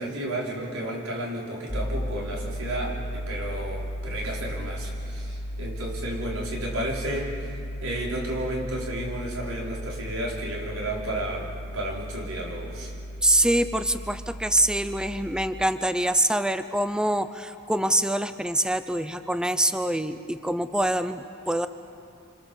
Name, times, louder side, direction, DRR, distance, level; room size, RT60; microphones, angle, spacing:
voice 1, 0.0-7.4 7.8-12.9, right 1 dB, 90° right, -2 dB, 4.9 m, -32 dB
sound 1, 1.7-15.3, equal, 15° left, 1.3 m, -35 dB
voice 2, 13.2-21.7, right 1 dB, 5° right, 11 dB, 0.6 m, -25 dB
28.5 x 26.0 x 7.1 m, 2.6 s
head